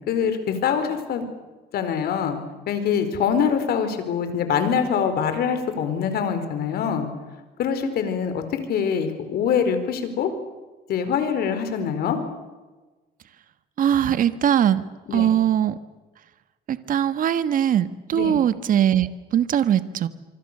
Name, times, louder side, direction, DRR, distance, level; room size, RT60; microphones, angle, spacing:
voice 1, 0.1-1.3 1.7-2.4 2.7-7.1 7.6-10.3 10.9-12.2 15.1-15.3 18.1-18.4, left 7 dB, 65° left, 9 dB, 4.6 m, -24 dB
voice 2, 13.8-14.8 15.1-15.8 16.7-20.1, right 10 dB, 55° right, 13 dB, 1.5 m, -21 dB
26.0 x 25.0 x 6.8 m, 1.2 s
cardioid pair, 110°, 17 cm